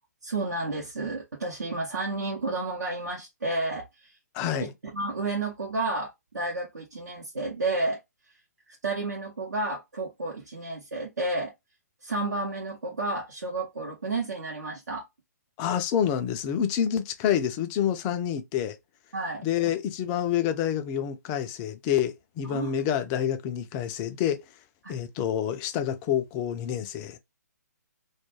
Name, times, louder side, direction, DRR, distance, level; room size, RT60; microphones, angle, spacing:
voice 1, 0.2-4.1 4.6-8.0 8.7-11.5 12.0-15.1 19.1-19.4 22.4-22.8 24.8-25.0, right 2 dB, 70° right, 0.7 m, -31 dB
voice 2, 4.3-4.7 15.6-18.8 19.4-24.4 24.9-27.2, left 9 dB, 20° left, 0.3 m, -28 dB
2.3 x 2.2 x 3.0 m
figure-of-eight pair, 130°, 10 cm